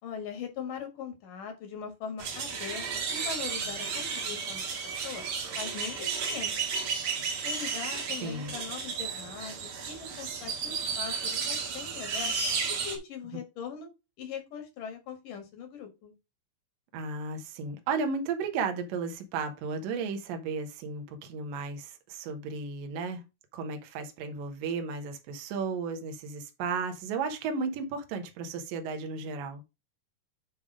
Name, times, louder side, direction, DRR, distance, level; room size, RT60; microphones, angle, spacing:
voice 1, 0.0-5.2 5.6-6.6 7.4-12.3 12.7-13.9 14.2-16.2, left 7 dB, 65° left, 3.4 m, -41 dB
sound 1, 2.2-13.0, right 5 dB, 60° right, 2.7 m, -33 dB
voice 2, 8.2-8.5 16.9-23.2 23.5-29.6, right 4 dB, 75° right, 2.8 m, -34 dB
9.5 x 3.5 x 4.9 m
omnidirectional pair, 4.1 m